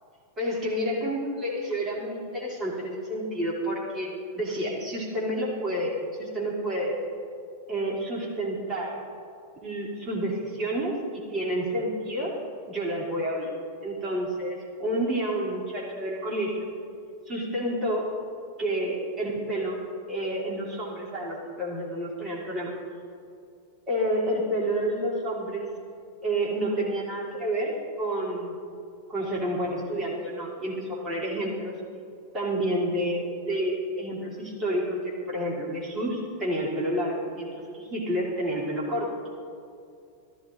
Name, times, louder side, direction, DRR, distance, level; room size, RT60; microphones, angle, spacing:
voice 1, 0.4-6.9 7.7-9.0 9.6-12.4 12.7-13.5 13.8-16.7 17.3-18.1 18.6-19.8 20.1-22.7 23.9-25.7 26.2-28.5 29.1-31.8 32.3-39.1, right 1 dB, 25° right, -4 dB, 2.9 m, -29 dB
14.0 x 13.5 x 2.6 m, 2.4 s
figure-of-eight pair, 90°, 0 cm